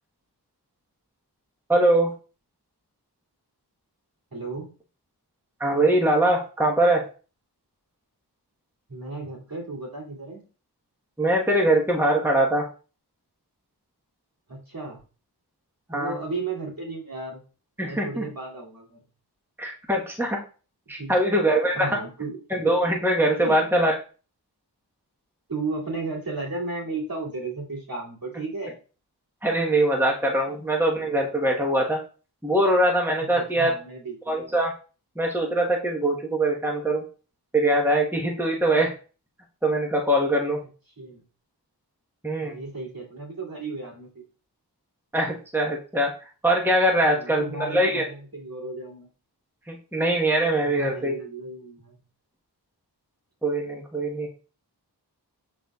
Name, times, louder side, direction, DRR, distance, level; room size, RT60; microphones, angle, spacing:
voice 1, 1.7-2.1 5.6-7.0 11.2-12.7 15.9-16.1 17.8-18.2 19.6-20.4 20.9-21.7 22.5-23.9 29.4-32.0 32.4-33.7 34.3-34.7 35.2-37.0 37.5-38.9 39.6-40.6 42.2-42.6 45.1-46.1 46.4-48.0 49.7-51.2 53.4-54.3, right 1 dB, 5° right, -1 dB, 1.3 m, -22 dB
voice 2, 4.3-4.7 8.9-10.4 14.5-15.0 15.9-17.4 17.8-19.0 20.9-21.4 21.7-22.4 23.4-23.6 25.5-28.8 30.5-30.7 33.2-34.2 41.0-41.2 42.4-44.2 47.1-49.1 50.6-51.9, right 3 dB, 60° right, -4 dB, 2.8 m, -34 dB
11.0 x 4.1 x 2.4 m, 0.36 s
wide cardioid pair, 45°, 40 cm